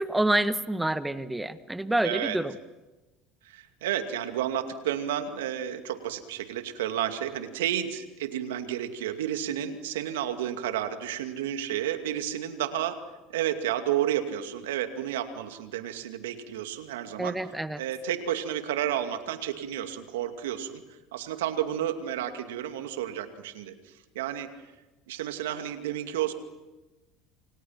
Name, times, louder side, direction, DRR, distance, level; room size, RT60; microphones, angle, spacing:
voice 1, 0.0-2.5 17.2-17.8, right 1 dB, 10° right, 12 dB, 1.5 m, -27 dB
voice 2, 2.0-2.4 3.4-13.0 13.3-17.4 17.8-20.8 21.1-24.5 25.1-26.3, right 11 dB, 80° right, 7 dB, 2.4 m, -31 dB
28.5 x 28.0 x 5.9 m, 1.1 s
hypercardioid pair, 80°, 0 cm